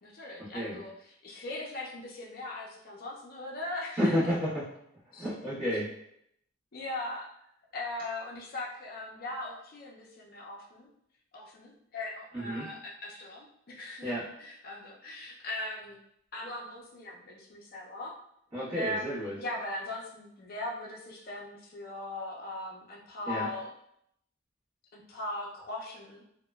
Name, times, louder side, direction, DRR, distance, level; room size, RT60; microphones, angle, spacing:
voice 1, 0.0-4.1 5.1-5.3 6.7-7.3 7.7-10.9 11.3-16.0 16.3-18.1 18.7-23.7 24.9-26.2, left 2 dB, 45° left, -2 dB, 0.5 m, -39 dB
voice 2, 4.0-4.7 5.2-5.9 12.4-12.7 14.0-14.2 18.5-19.4 23.3-23.5, equal, 25° right, -10 dB, 1.2 m, -30 dB
2.9 x 2.1 x 2.3 m, 0.73 s
head